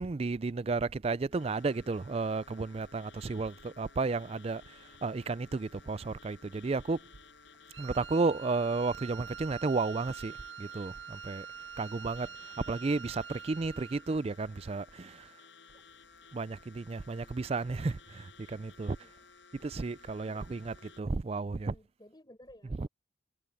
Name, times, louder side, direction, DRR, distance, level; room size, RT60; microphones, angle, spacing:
voice 1, 0.0-4.8 5.0-7.0 7.8-11.5 11.8-12.3 12.7-15.3 16.3-19.0 19.6-21.7 22.8-22.9, right 3 dB, 30° right, 0.4 m, -33 dB
sound 1, 1.3-21.0, left 5 dB, 65° left, 6.4 m, -57 dB
Wind instrument woodwind instrument, 7.7-14.1, right 7 dB, 85° right, 6.3 m, -46 dB
voice 2, 12.0-12.6 18.9-19.2 20.2-20.6 21.6-22.9, left 1 dB, 20° left, 5.5 m, -58 dB
head